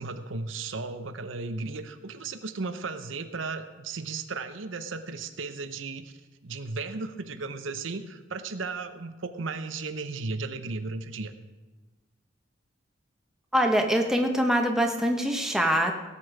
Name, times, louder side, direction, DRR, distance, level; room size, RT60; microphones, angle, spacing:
voice 1, 0.0-6.1 6.4-11.3, right 3 dB, 85° right, 9 dB, 0.8 m, -35 dB
voice 2, 13.5-15.9, equal, 5° right, 2 dB, 1.1 m, -24 dB
17.5 x 8.5 x 4.9 m, 1.2 s
head